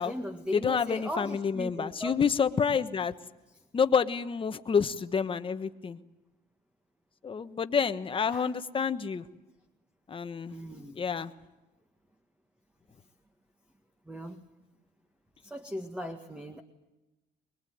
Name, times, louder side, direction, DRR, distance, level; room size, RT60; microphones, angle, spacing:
voice 1, 0.0-2.2 8.3-8.5 10.5-11.0 14.1-14.4 15.4-16.6, equal, 5° right, 7 dB, 1.7 m, -38 dB
voice 2, 0.5-3.1 3.7-6.0 7.2-9.2 10.1-10.6 10.9-11.3, left 6 dB, 30° left, 10 dB, 1.3 m, -28 dB
24.0 x 21.5 x 9.5 m, 1.1 s
cardioid pair, 110°, 17 cm